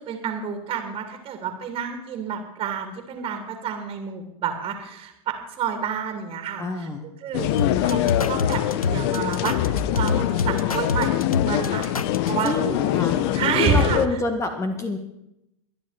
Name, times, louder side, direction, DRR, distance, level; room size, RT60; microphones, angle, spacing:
voice 1, 0.0-6.9 7.2-8.0 8.3-11.9 12.2-12.5 13.3-14.0, right 6 dB, 30° right, 5 dB, 2.7 m, -29 dB
voice 2, 6.6-7.0 12.4-13.2 13.6-15.0, left 2 dB, 15° left, 7 dB, 1.7 m, -27 dB
sound 1, 7.3-14.1, left 12 dB, 45° left, 0.9 m, -24 dB
sound 2, 7.6-12.5, left 4 dB, 90° left, 0.5 m, -27 dB
24.0 x 10.0 x 4.2 m, 0.82 s
figure-of-eight pair, 95°, 18 cm